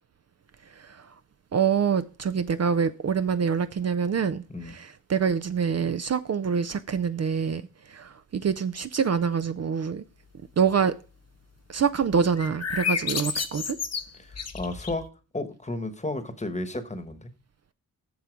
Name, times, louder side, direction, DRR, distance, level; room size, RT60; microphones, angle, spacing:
voice 1, 1.5-7.6 7.9-10.0 10.6-10.9 11.7-13.8, right 6 dB, 50° right, 0.5 m, -25 dB
sound 1, 12.4-15.1, left 6 dB, 45° left, 0.9 m, -31 dB
voice 2, 14.1-15.1 15.3-17.3, left 2 dB, 20° left, 1.1 m, -33 dB
7.7 x 6.9 x 5.1 m
wide cardioid pair, 130°, 35 cm